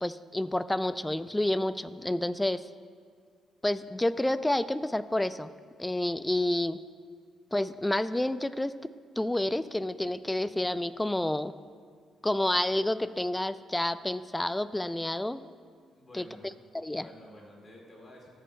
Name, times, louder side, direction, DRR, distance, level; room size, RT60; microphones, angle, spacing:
voice 1, 0.0-2.6 3.6-5.5 5.8-6.8 7.5-8.7 9.2-11.5 12.2-15.4 16.1-16.2 16.7-17.1, left 1 dB, 10° left, 14 dB, 0.3 m, -29 dB
voice 2, 15.9-16.5 16.9-18.3, left 1 dB, 30° left, -2 dB, 2.8 m, -51 dB
14.5 x 5.1 x 4.5 m, 2.1 s
cardioid pair, 90°, 0 cm